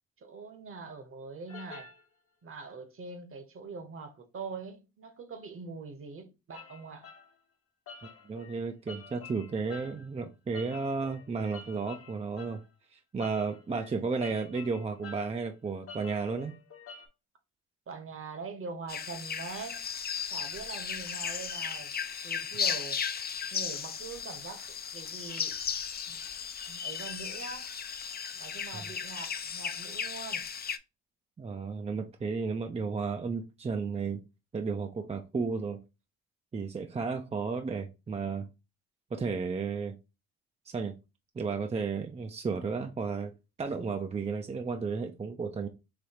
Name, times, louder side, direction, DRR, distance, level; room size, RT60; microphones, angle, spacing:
voice 1, 0.2-1.9 2.4-7.1 17.9-19.8 20.3-21.9 22.2-23.0 23.5-25.6 26.1-26.2 26.7-27.7 28.3-30.5, right 4 dB, 45° right, 1.1 m, -43 dB
sound 1, 1.5-2.0 6.5-7.3 7.9-10.1 10.5-12.6 13.2-15.4 15.9-17.1, left 5 dB, 50° left, 1.1 m, -49 dB
voice 2, 8.3-12.6 12.9-16.5 31.4-34.2 34.5-35.8 36.5-38.5 39.1-40.0 40.7-40.9 41.4-43.3 43.6-45.7, right 4 dB, 20° right, 0.5 m, -33 dB
sound 2, 18.9-30.8, left 7 dB, 30° left, 0.5 m, -36 dB
4.9 x 3.0 x 2.9 m
cardioid pair, 90°, 30 cm